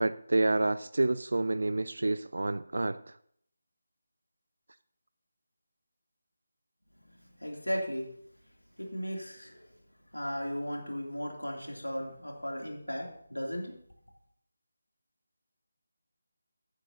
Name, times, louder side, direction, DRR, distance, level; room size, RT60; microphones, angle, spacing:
voice 1, 0.0-3.0, right 2 dB, 60° right, 15 dB, 0.3 m, -28 dB
voice 2, 7.0-8.1 8.8-9.8 10.1-13.7, equal, 90° left, 0 dB, 2.9 m, -36 dB
15.5 x 9.7 x 2.8 m, 0.66 s
figure-of-eight pair, 160°, 0 cm